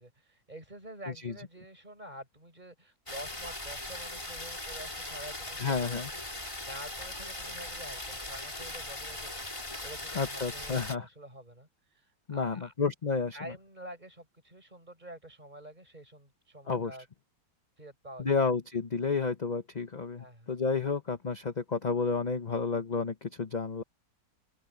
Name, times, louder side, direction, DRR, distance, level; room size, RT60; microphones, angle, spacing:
voice 1, 0.0-11.7 11.9-12.7 13.3-17.1 17.8-18.4 20.2-20.5, right 1 dB, 25° right, 6.7 m, -48 dB
sound 1, 3.1-10.9, left 1 dB, 15° left, 2.6 m, -39 dB
voice 2, 5.6-6.1 10.1-11.1 12.3-13.4 16.7-17.0 18.2-23.8, left 5 dB, 30° left, 0.8 m, -31 dB
omnidirectional pair, 1.9 m